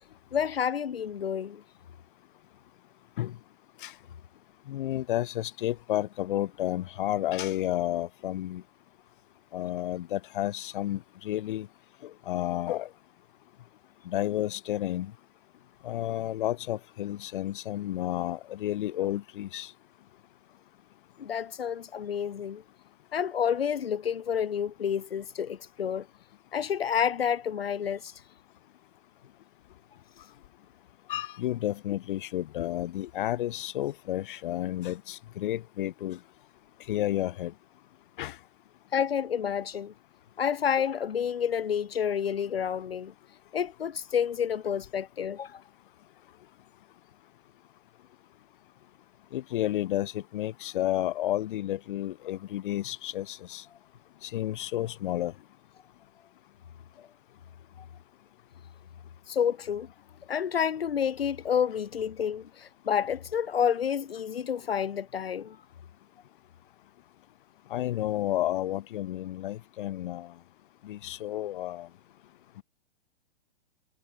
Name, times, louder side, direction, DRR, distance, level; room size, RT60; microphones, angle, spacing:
voice 1, 0.3-1.6 21.2-22.6 23.1-26.1 26.5-28.2 38.9-39.9 40.4-43.1 43.5-45.6 57.0-57.1 59.3-59.9 60.3-65.6, left 8 dB, 75° left, 2.0 m, -29 dB
voice 2, 4.7-8.6 9.5-11.7 12.0-12.9 14.1-15.1 15.8-19.7 31.1-36.2 36.9-37.5 38.2-38.4 49.3-53.6 54.2-55.3 67.7-70.3 70.8-71.9, left 13 dB, 60° left, 2.1 m, -31 dB
hypercardioid pair, 120°, 30 cm